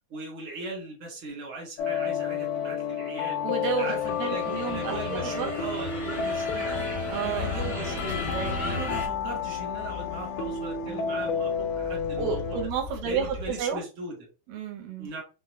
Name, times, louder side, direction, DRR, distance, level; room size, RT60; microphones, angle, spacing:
voice 1, 0.1-3.4 3.8-6.9 7.2-8.2 8.6-12.6 13.0-14.2 15.0-15.2, right 2 dB, 45° right, 0.9 m, -38 dB
sound 1, 1.8-12.7, left 6 dB, 85° left, 2.3 m, -31 dB
voice 2, 3.4-5.5 7.1-7.7 8.3-8.5 10.8-11.1 12.2-13.8 14.5-15.1, right 6 dB, 75° right, 1.4 m, -31 dB
sound 2, 3.6-9.1, left 3 dB, 30° left, 0.8 m, -35 dB
sound 3, 7.0-13.8, left 2 dB, 65° left, 2.3 m, -41 dB
5.3 x 2.1 x 3.1 m
omnidirectional pair, 3.8 m